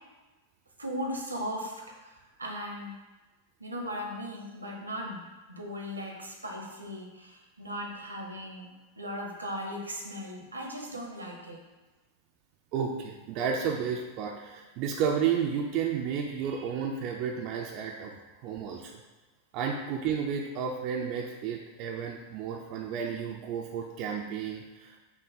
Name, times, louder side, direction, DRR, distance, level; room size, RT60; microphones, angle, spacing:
voice 1, 0.8-2.9 3.6-5.2 5.5-11.6, equal, 80° right, 0 dB, 0.8 m, -38 dB
voice 2, 12.7-18.1 18.4-19.0 19.5-25.0, right 7 dB, 40° right, 1 dB, 0.4 m, -32 dB
6.0 x 2.2 x 4.1 m, 1.2 s
figure-of-eight pair, 90°, 0 cm